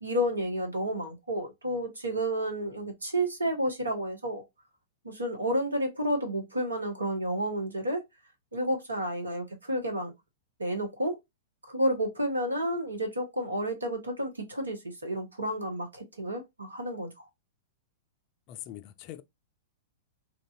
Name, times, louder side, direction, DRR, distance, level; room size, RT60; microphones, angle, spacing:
voice 1, 0.0-4.4 5.0-8.0 8.5-10.1 10.6-11.2 11.7-17.2, equal, 80° right, 1.0 m, -31 dB
voice 2, 18.5-19.2, left 13 dB, 40° left, 0.3 m, -42 dB
3.1 x 2.5 x 2.4 m
figure-of-eight pair, 100°, 0 cm